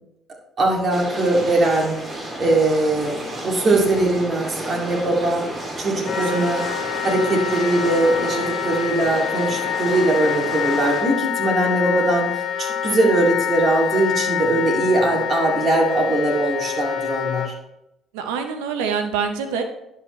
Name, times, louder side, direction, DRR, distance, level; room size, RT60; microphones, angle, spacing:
voice 1, 0.6-3.2 3.4-5.5 5.8-6.6 7.0-17.5, right 2 dB, 50° right, -1 dB, 2.3 m, -21 dB
sound 1, 0.9-11.0, right 1 dB, 35° right, 2.9 m, -32 dB
Wind instrument woodwind instrument, 6.0-17.5, left 9 dB, 45° left, 1.0 m, -26 dB
voice 2, 6.3-6.7 18.1-19.6, right 6 dB, 80° right, 6 dB, 0.7 m, -26 dB
11.0 x 5.5 x 3.1 m, 0.86 s
hypercardioid pair, 55°, 0 cm